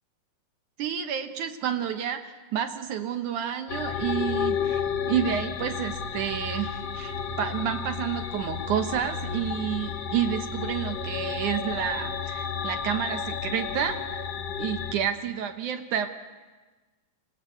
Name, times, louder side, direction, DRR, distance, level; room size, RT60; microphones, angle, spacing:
voice 1, 0.8-14.2 14.6-16.2, right 9 dB, 70° right, 8 dB, 2.3 m, -30 dB
sound 1, 3.7-14.9, left 6 dB, 75° left, 1.1 m, -32 dB
26.5 x 17.5 x 8.4 m, 1.3 s
omnidirectional pair, 4.1 m